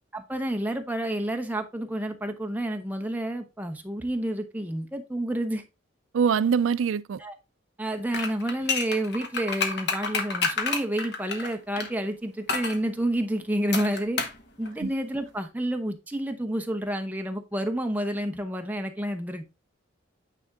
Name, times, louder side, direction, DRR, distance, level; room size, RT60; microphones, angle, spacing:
voice 1, 0.1-5.6 7.2-7.3 7.8-14.2 14.6-19.4, right 1 dB, 10° right, 0.8 m, -29 dB
voice 2, 6.1-7.2 14.8-14.9, right 6 dB, 75° right, 0.4 m, -23 dB
sound 1, 8.1-11.9 12.5-12.8 13.7-14.4 14.7-14.8, left 4 dB, 55° left, 1.2 m, -29 dB
9.1 x 3.5 x 3.6 m
head